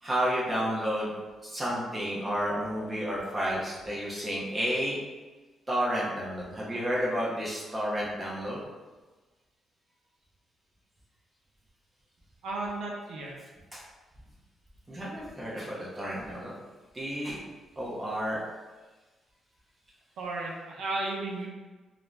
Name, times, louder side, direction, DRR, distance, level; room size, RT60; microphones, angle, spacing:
voice 1, 0.0-1.1 1.4-5.0 5.7-8.6 13.7-13.8 14.9-16.5 16.9-17.4 17.8-18.4, equal, 20° right, -5 dB, 0.6 m, -31 dB
voice 2, 12.4-13.4 20.2-21.5, right 2 dB, 80° right, -2 dB, 0.6 m, -34 dB
2.4 x 2.1 x 3.1 m, 1.2 s
cardioid pair, 135°, 0 cm